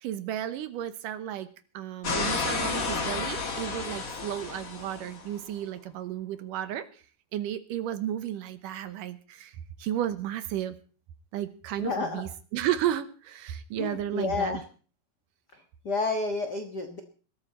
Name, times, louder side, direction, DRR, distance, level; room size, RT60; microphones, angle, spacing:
voice 1, 0.0-1.5 1.7-7.0 7.3-10.8 11.3-14.6, right 11 dB, 70° right, 12 dB, 2.3 m, -33 dB
sound 1, 2.0-5.3, left 4 dB, 60° left, 0.9 m, -31 dB
voice 2, 11.8-12.2 13.8-14.6 15.5-17.0, left 3 dB, 90° left, 6 dB, 0.9 m, -30 dB
20.5 x 13.5 x 4.3 m, 0.39 s
omnidirectional pair, 4.3 m